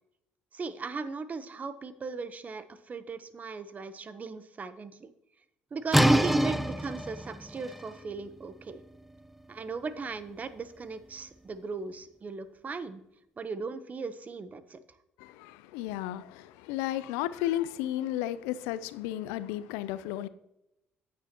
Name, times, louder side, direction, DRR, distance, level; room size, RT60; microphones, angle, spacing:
voice 1, 0.5-5.1 5.7-8.8 9.5-13.0 13.4-14.8, right 4 dB, 35° right, 0.8 m, -38 dB
sound 1, 5.9-11.5, equal, 5° right, 0.6 m, -29 dB
voice 2, 15.2-20.3, left 13 dB, 85° left, 0.5 m, -33 dB
9.2 x 9.0 x 2.9 m
supercardioid pair, 70°, 4 cm